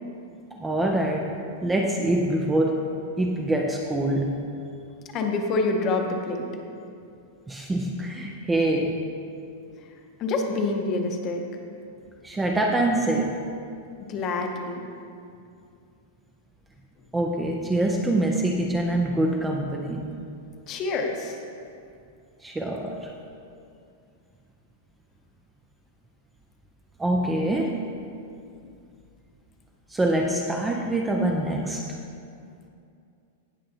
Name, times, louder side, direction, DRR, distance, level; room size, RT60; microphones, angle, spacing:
voice 1, 0.6-2.8 3.2-4.4 7.5-9.1 12.2-13.4 17.1-20.1 22.4-23.1 27.0-27.8 29.9-31.9, right 1 dB, 5° right, 0 dB, 0.4 m, -25 dB
voice 2, 5.1-6.5 10.2-11.4 14.1-14.8 20.7-21.4, left 3 dB, 25° left, 3 dB, 0.8 m, -26 dB
17.5 x 6.4 x 2.8 m, 2.5 s
supercardioid pair, 175°, 0 cm